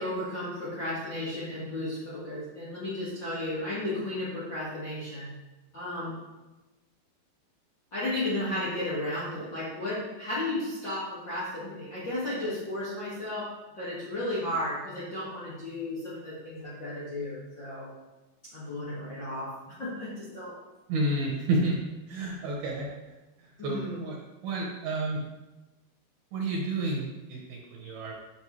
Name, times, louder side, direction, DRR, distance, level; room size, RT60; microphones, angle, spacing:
voice 1, 0.0-5.3 5.7-6.1 7.9-13.5 13.7-17.9 18.4-19.5 19.8-20.5 23.6-24.0, left 1 dB, 90° left, -10 dB, 1.0 m, -34 dB
voice 2, 20.9-21.7 22.1-22.9 23.6-24.2 24.4-25.2 26.3-28.1, right 2 dB, 70° right, -2 dB, 2.6 m, -30 dB
10.0 x 6.3 x 3.2 m, 1.1 s
omnidirectional pair, 5.3 m